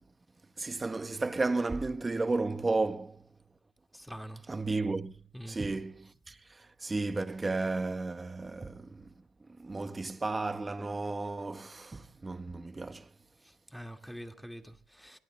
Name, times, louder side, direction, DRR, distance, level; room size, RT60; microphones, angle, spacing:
voice 1, 0.6-3.2 4.5-9.1 9.5-13.1, right 3 dB, 25° right, 1.2 m, -33 dB
voice 2, 3.9-4.5 5.3-5.6 13.4-15.2, equal, ahead, 2.1 m, -45 dB
25.5 x 22.5 x 2.3 m
supercardioid pair, 65°, 0 cm